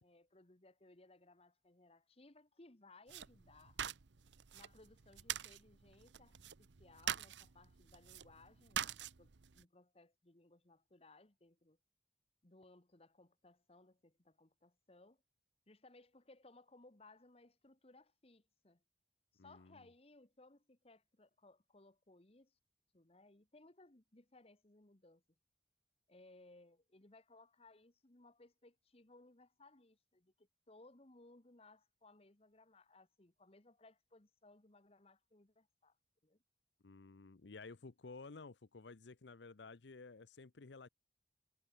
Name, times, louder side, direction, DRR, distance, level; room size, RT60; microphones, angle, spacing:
voice 1, 0.0-3.8 4.5-11.8 12.4-15.2 15.7-18.8 19.3-22.5 22.9-25.2 26.1-36.0 36.2-36.4, left 2 dB, 35° left, 1.4 m, -64 dB
sound 1, 3.1-9.6, right 9 dB, 80° right, 0.8 m, -45 dB
voice 2, 19.4-19.8 36.8-40.9, left 3 dB, 75° left, 0.8 m, -54 dB
head